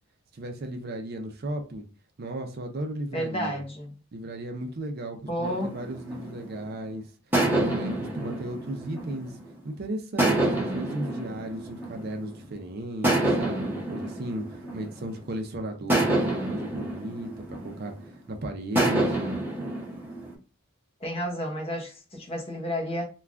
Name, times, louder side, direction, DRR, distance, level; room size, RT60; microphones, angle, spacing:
voice 1, 0.3-1.8 2.2-3.6 4.1-7.0 7.4-9.3 9.6-19.4, right 1 dB, 45° right, 0.5 m, -35 dB
voice 2, 3.1-3.9 5.3-5.8 21.0-23.1, equal, 25° left, 0.8 m, -31 dB
sound 1, 5.4-6.7 7.3-9.6 10.2-12.4 13.0-15.3 15.9-18.2 18.8-20.3, right 1 dB, 10° right, 0.7 m, -28 dB
3.3 x 2.3 x 2.4 m
head